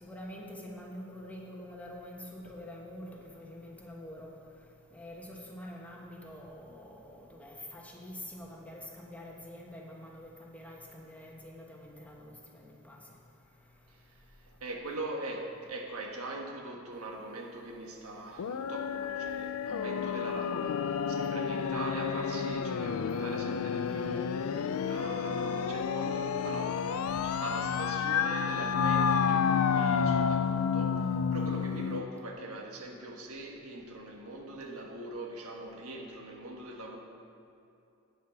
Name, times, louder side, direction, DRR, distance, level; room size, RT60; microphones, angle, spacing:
voice 1, 0.0-4.3 4.9-13.0, left 1 dB, 5° left, -2 dB, 1.2 m, -46 dB
voice 2, 13.9-37.0, right 2 dB, 90° right, 1 dB, 1.4 m, -42 dB
sound 1, 18.4-32.0, left 6 dB, 75° left, 0.4 m, -30 dB
8.9 x 8.2 x 5.9 m, 2.6 s
head